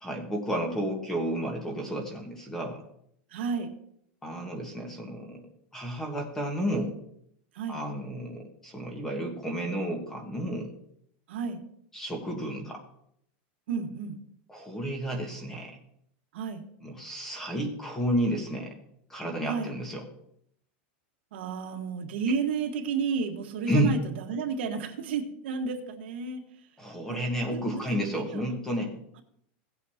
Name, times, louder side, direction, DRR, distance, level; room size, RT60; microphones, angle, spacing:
voice 1, 0.0-2.8 4.2-5.4 5.7-6.9 7.7-10.7 11.9-12.8 14.5-15.8 16.8-18.8 19.1-20.0 23.7-23.9 26.8-28.9, equal, 5° left, 3 dB, 1.5 m, -31 dB
voice 2, 3.3-3.7 7.5-7.8 11.3-11.6 13.7-14.2 16.3-16.6 19.5-19.7 21.3-26.4 27.1-27.6 28.2-28.4, right 5 dB, 75° right, 4 dB, 1.6 m, -32 dB
17.0 x 8.1 x 2.9 m, 0.70 s
supercardioid pair, 180°, 6 cm